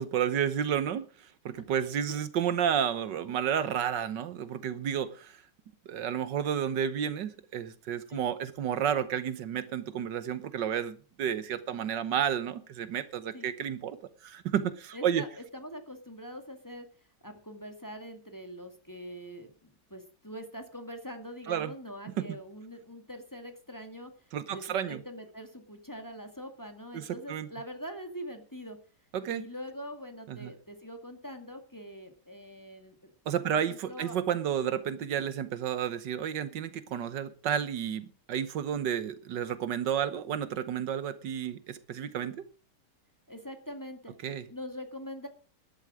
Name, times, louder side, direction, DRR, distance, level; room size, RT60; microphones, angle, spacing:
voice 1, 0.0-5.4 5.9-14.0 14.2-15.2 21.5-21.7 22.1-22.3 24.3-25.0 26.9-27.5 29.1-29.5 30.3-30.5 33.3-42.4 44.2-44.4, right 9 dB, 75° right, 13 dB, 1.7 m, -31 dB
voice 2, 14.9-16.9 17.2-28.8 29.3-33.1 33.4-34.2 43.3-44.1 44.5-45.3, equal, 10° left, 5 dB, 2.0 m, -43 dB
12.5 x 11.5 x 6.2 m, 0.39 s
omnidirectional pair, 1.9 m